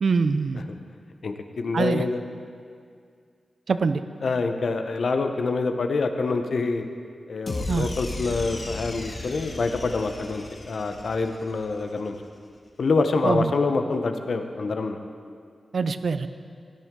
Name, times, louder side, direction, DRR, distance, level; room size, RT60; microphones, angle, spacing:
voice 1, 0.0-0.6 1.7-2.0 3.7-4.0 7.7-7.9 13.2-13.5 15.7-16.3, right 4 dB, 65° right, 11 dB, 0.5 m, -23 dB
voice 2, 1.2-2.2 4.2-6.8 7.3-12.2 12.8-15.0, left 3 dB, 70° left, 6 dB, 0.8 m, -26 dB
sound 1, 7.5-11.8, left 2 dB, 45° left, 1.3 m, -35 dB
17.5 x 11.0 x 3.7 m, 2.1 s
wide cardioid pair, 80°, 0 cm